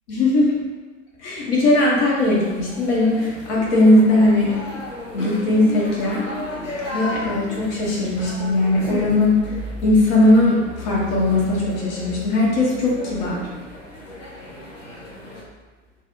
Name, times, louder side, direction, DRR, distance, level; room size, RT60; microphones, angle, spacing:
voice 1, 0.1-0.6 1.2-4.6 5.1-6.2 6.9-9.6 9.8-13.4, left 2 dB, 50° left, -5 dB, 0.7 m, -19 dB
sound 1, 2.2-15.4, left 2 dB, 90° left, 0.6 m, -34 dB
2.5 x 2.0 x 2.4 m, 1.3 s
figure-of-eight pair, 75°, 38 cm